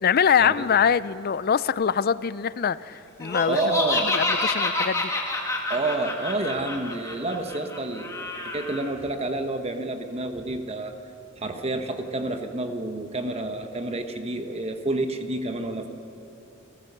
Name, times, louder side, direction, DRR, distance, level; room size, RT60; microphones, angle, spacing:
voice 1, 0.0-3.6 4.0-5.1, left 7 dB, 45° left, 17 dB, 0.4 m, -23 dB
Laughter, 3.2-8.8, left 2 dB, 15° left, 2.0 m, -28 dB
voice 2, 3.5-4.1 5.7-10.9 11.4-15.9, right 2 dB, 30° right, 6 dB, 1.0 m, -29 dB
29.0 x 14.0 x 6.7 m, 3.0 s
head